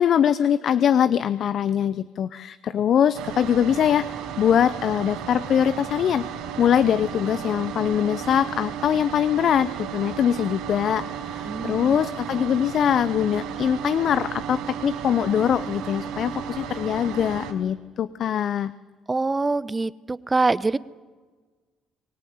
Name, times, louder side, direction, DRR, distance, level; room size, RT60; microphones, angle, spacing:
voice 1, 0.0-6.3 6.6-18.7, left 9 dB, 60° left, 15 dB, 0.6 m, -22 dB
sound 1, 3.1-17.5, right 8 dB, 85° right, 4.5 m, -34 dB
voice 2, 11.5-12.0 19.1-20.8, right 3 dB, 20° right, 17 dB, 0.8 m, -24 dB
24.0 x 17.5 x 9.4 m, 1.4 s
supercardioid pair, 80°, 0 cm